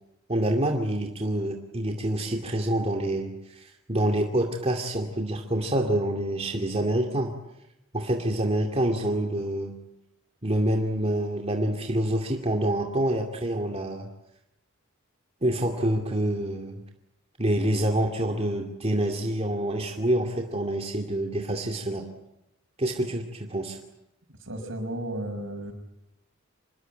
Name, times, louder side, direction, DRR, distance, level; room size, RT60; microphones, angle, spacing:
voice 1, 0.3-7.3 7.9-9.8 10.4-14.1 15.4-16.8 17.4-22.1 22.8-23.8, right 1 dB, 30° right, 2 dB, 2.4 m, -27 dB
voice 2, 24.4-25.7, right 1 dB, 65° right, 6 dB, 6.3 m, -33 dB
26.5 x 21.5 x 9.3 m, 0.86 s
head